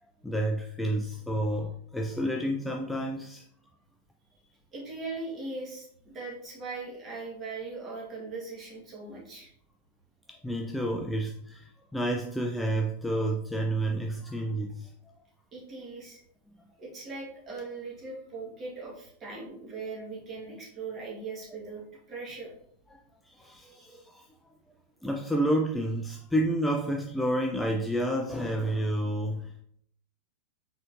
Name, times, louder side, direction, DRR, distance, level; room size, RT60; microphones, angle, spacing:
voice 1, 0.2-3.4 10.3-14.9 22.9-24.3 25.0-29.6, right 1 dB, 5° left, 2 dB, 0.4 m, -30 dB
voice 2, 4.7-9.5 15.5-16.2 16.8-21.8 22.1-22.5 23.7-23.8, right 3 dB, 25° right, -3 dB, 1.6 m, -39 dB
4.1 x 3.8 x 2.6 m, 0.68 s
figure-of-eight pair, 90°, 0 cm